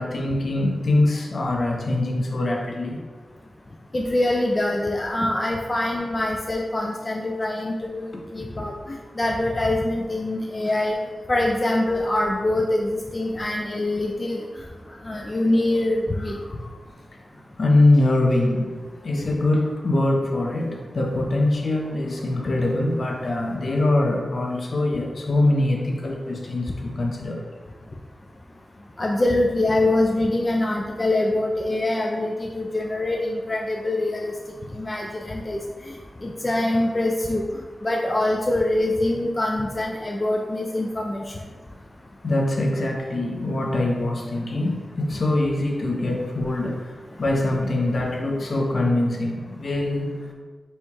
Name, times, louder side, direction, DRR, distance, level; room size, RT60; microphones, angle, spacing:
voice 1, 0.0-3.0 8.3-8.4 16.2-16.7 17.6-27.4 42.2-50.1, left 2 dB, 60° left, 0 dB, 0.7 m, -23 dB
voice 2, 3.9-11.0 11.3-14.4 15.0-16.4 29.0-34.3 34.7-35.6 35.9-36.0 36.2-37.4 37.8-41.2, left 1 dB, 30° left, -1 dB, 0.3 m, -24 dB
4.3 x 2.3 x 4.6 m, 1.4 s
wide cardioid pair, 100°, 0 cm